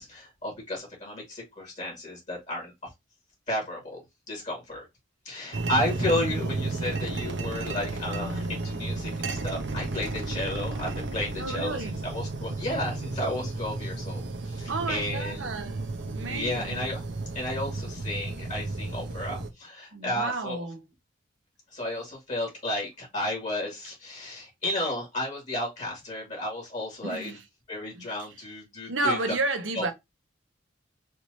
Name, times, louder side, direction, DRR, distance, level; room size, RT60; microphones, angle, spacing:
voice 1, 0.0-2.7 3.5-4.0 4.3-4.9 5.2-11.8 12.0-15.5 16.1-17.0 17.3-20.6 21.7-27.4 27.7-29.2 29.7-29.8, left 1 dB, 40° left, 2.4 m, -33 dB
sound 1, 5.5-19.5, right 2 dB, 65° right, 0.7 m, -33 dB
voice 2, 11.3-12.0 14.7-16.9 19.9-20.9 27.0-27.5 27.9-28.5 28.9-29.9, right 2 dB, 85° right, 1.0 m, -32 dB
4.7 x 3.1 x 2.7 m
head